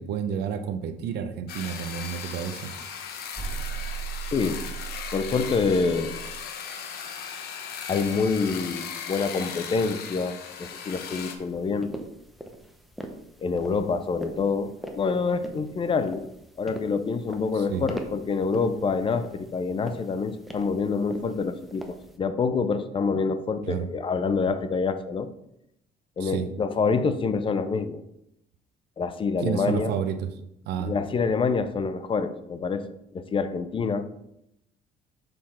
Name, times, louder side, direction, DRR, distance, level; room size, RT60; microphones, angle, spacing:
voice 1, 0.0-2.7 17.5-17.9 23.7-23.9 26.2-26.4 29.4-30.3 30.7-30.9, right 8 dB, 80° right, 9 dB, 0.7 m, -30 dB
sound 1, 1.5-11.3, left 7 dB, 70° left, 0.9 m, -37 dB
sound 2, 3.3-6.4, right 7 dB, 20° right, 1.4 m, -36 dB
voice 2, 4.3-4.7 5.1-6.2 7.9-11.9 13.4-16.3 16.6-25.3 26.2-28.0 29.0-30.0 30.8-32.8 33.1-34.1, left 4 dB, 30° left, 11 dB, 0.5 m, -26 dB
sound 3, 11.4-22.2, equal, ahead, 0.7 m, -42 dB
6.6 x 3.8 x 4.3 m, 0.79 s
cardioid pair, 110°, 17 cm